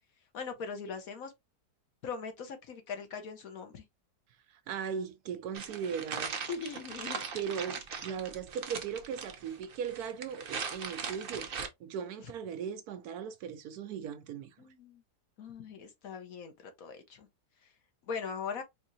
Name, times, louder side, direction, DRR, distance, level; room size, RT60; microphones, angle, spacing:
voice 1, 0.3-1.3 2.0-3.8 6.1-6.2 6.5-7.2 12.2-12.3 14.6-15.0 15.4-17.3 17.6-17.7 18.0-18.6, left 5 dB, 60° left, 1.2 m, -40 dB
voice 2, 4.7-6.4 7.3-11.5 11.8-14.5, right 7 dB, 70° right, 1.0 m, -38 dB
sound 1, 5.5-11.7, right 6 dB, 55° right, 0.6 m, -40 dB
4.6 x 2.8 x 2.6 m
omnidirectional pair, 1.8 m